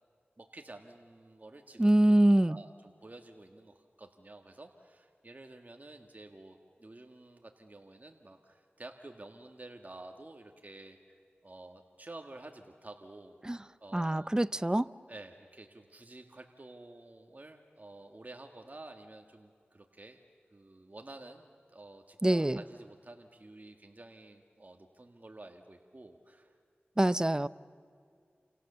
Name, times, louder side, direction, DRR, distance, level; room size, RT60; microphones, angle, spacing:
voice 1, 0.4-2.2 2.5-11.0 11.4-13.4 13.8-14.3 15.1-20.2 20.5-26.6, right 2 dB, 40° right, 4 dB, 1.8 m, -51 dB
voice 2, 1.8-2.6 13.4-13.6 13.9-14.9 22.2-22.6 27.0-27.5, right 1 dB, 20° right, 16 dB, 0.6 m, -25 dB
29.0 x 26.5 x 6.9 m, 2.2 s
cardioid pair, 45°, 4 cm